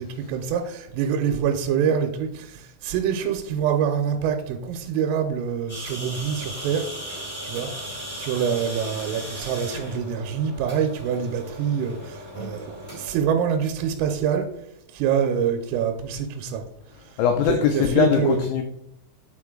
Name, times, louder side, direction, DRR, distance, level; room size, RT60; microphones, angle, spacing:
voice 1, 0.0-6.9 7.4-14.5 14.9-16.6 17.0-17.2 17.5-18.4, right 8 dB, 85° right, 4 dB, 3.2 m, -25 dB
sound 1, 5.7-13.1, equal, 15° left, 1.3 m, -37 dB
voice 2, 17.2-18.6, left 7 dB, 90° left, 5 dB, 2.6 m, -21 dB
8.2 x 4.5 x 3.7 m, 0.74 s
omnidirectional pair, 5.9 m